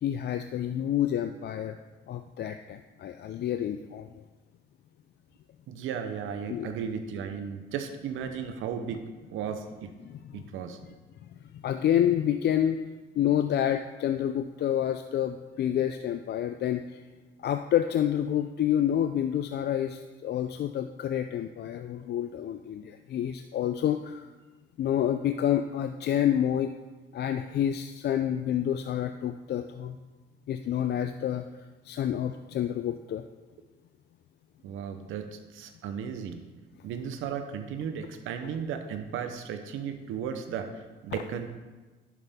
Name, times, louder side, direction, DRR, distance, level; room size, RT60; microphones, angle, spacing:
voice 1, 0.0-1.8 2.1-4.1 6.5-6.7 10.3-10.4 11.5-12.8 13.1-17.0 17.4-24.3 24.8-26.7 27.1-30.0 30.5-31.4 31.8-33.2, left 10 dB, 55° left, 8 dB, 0.4 m, -28 dB
voice 2, 5.7-9.0 9.3-9.9 10.3-10.8 34.6-36.5 36.8-41.5, right 7 dB, 90° right, 8 dB, 0.8 m, -35 dB
11.0 x 5.7 x 3.6 m, 1.2 s
cardioid pair, 90°, 20 cm